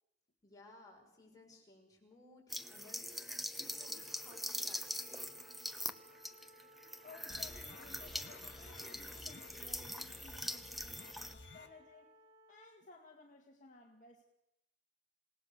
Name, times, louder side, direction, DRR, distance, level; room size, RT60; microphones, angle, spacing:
voice 1, 0.4-4.8, left 2 dB, 20° left, -1 dB, 6.0 m, -60 dB
sound 1, 2.5-11.3, equal, ahead, 0.9 m, -43 dB
Wind instrument woodwind instrument, 3.6-12.8, equal, 35° right, 1.8 m, -62 dB
voice 2, 7.0-12.2 12.5-14.2, left 3 dB, 45° left, 1 dB, 2.0 m, -58 dB
sound 2, 7.3-11.7, left 2 dB, 75° left, 2.4 m, -54 dB
28.0 x 18.0 x 6.8 m, 0.86 s
head